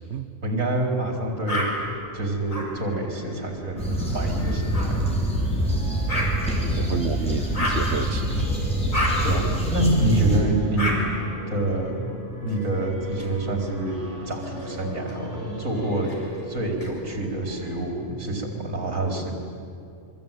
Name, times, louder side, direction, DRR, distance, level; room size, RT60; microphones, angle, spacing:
voice 1, 0.4-1.9 2.1-5.1 9.2-11.0 11.5-12.1 12.4-14.0 14.2-16.1 16.5-19.3, right 1 dB, 75° right, 1 dB, 4.6 m, -27 dB
sound 1, 0.9-17.8, right 2 dB, 60° left, 8.1 m, -40 dB
sound 2, 1.5-1.7 2.5-2.7 4.7-4.9 6.1-6.3 7.5-7.8 8.9-9.1 10.8-11.0 12.5-13.3 14.2-15.1 16.0-16.9, left 1 dB, 75° left, 5.8 m, -30 dB
sound 3, 3.8-10.4, right 1 dB, 5° left, 5.7 m, -25 dB
voice 2, 6.6-8.5, right 6 dB, 55° right, 10 dB, 1.4 m, -31 dB
27.5 x 23.5 x 9.2 m, 2.3 s
omnidirectional pair, 1.4 m